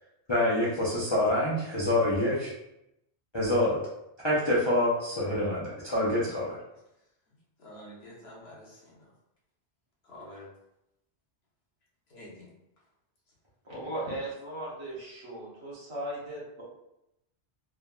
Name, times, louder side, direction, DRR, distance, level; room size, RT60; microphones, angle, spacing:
voice 1, 0.3-2.5 3.3-3.8 4.2-6.5, left 1 dB, 40° left, -8 dB, 0.4 m, -26 dB
voice 2, 7.6-9.1 10.0-10.5 12.1-12.5, left 1 dB, 65° left, -4 dB, 1.0 m, -48 dB
voice 3, 13.6-16.6, right 1 dB, 30° right, -7 dB, 0.8 m, -37 dB
3.3 x 2.2 x 2.3 m, 0.86 s
omnidirectional pair, 1.2 m